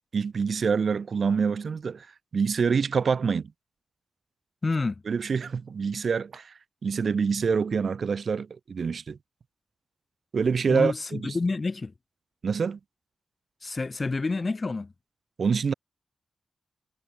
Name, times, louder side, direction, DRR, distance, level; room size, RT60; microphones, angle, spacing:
voice 1, 0.1-2.1 2.3-3.5 5.1-6.5 6.8-9.2 10.3-11.3 12.4-12.8 15.4-15.7, right 5 dB, 65° right, 0.4 m, -26 dB
voice 2, 4.6-5.0 10.7-11.9 13.6-14.9, left 3 dB, 45° left, 0.9 m, -28 dB
supercardioid pair, 40°, 0 cm